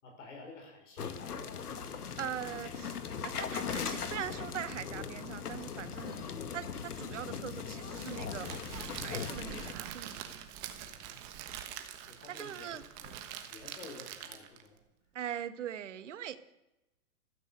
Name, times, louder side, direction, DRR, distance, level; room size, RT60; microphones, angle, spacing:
voice 1, 0.0-1.6 10.8-11.3 12.1-13.2 13.5-14.8, left 3 dB, 55° left, 2 dB, 5.6 m, -51 dB
sound 1, 1.0-9.7, left 6 dB, 80° left, 2.1 m, -39 dB
sound 2, 1.9-7.3, left 3 dB, 30° left, 5.8 m, -63 dB
voice 2, 2.2-6.3 6.5-8.5 8.8-10.1 12.3-12.8 15.1-16.4, right 10 dB, 50° right, 12 dB, 1.4 m, -41 dB
Crackle, 7.9-14.7, right 10 dB, 20° right, 1.3 m, -44 dB
15.0 x 14.0 x 6.6 m, 0.94 s
hypercardioid pair, 165°, 45 cm